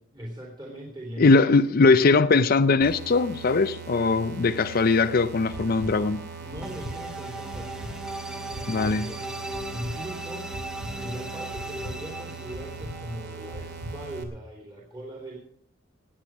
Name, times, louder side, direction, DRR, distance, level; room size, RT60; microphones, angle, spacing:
voice 1, 0.1-1.6 6.4-7.9 8.3-15.4, right 1 dB, 25° right, 2.8 m, -40 dB
voice 2, 1.2-6.2 8.7-9.1, left 3 dB, 50° left, 0.5 m, -20 dB
sound 1, 2.8-14.2, right 5 dB, 55° right, 2.5 m, -41 dB
sound 2, 5.5-13.9, right 1 dB, 5° right, 0.8 m, -38 dB
sound 3, 5.5-5.9 6.5-6.9 7.5-7.9 8.5-8.9 9.5-9.9 10.5-10.9 11.5-11.9 12.5-12.9 13.5-13.9, equal, 85° right, 3.1 m, -37 dB
18.0 x 8.8 x 6.0 m
head